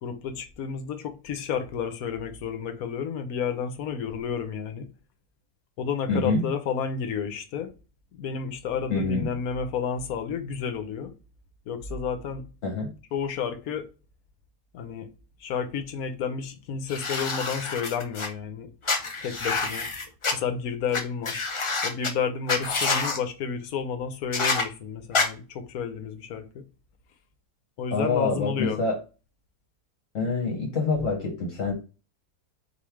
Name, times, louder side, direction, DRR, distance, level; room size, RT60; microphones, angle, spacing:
voice 1, 0.0-4.9 5.8-7.7 8.1-11.1 11.7-12.5 13.1-13.9 14.7-15.1 15.4-18.7 19.2-19.9 20.3-21.5 21.8-26.6 27.8-28.8, left 6 dB, 75° left, 1.1 m, -31 dB
voice 2, 6.1-6.5 8.9-9.3 12.6-12.9 27.9-29.0 30.1-31.7, left 3 dB, 60° left, 1.4 m, -26 dB
sound 1, 16.9-18.3 18.8-20.3 20.9-21.0 21.2-22.1 22.5-23.2 24.3-24.6 25.1-25.2, left 3 dB, 35° left, 0.4 m, -27 dB
4.5 x 3.2 x 3.5 m
omnidirectional pair, 1.6 m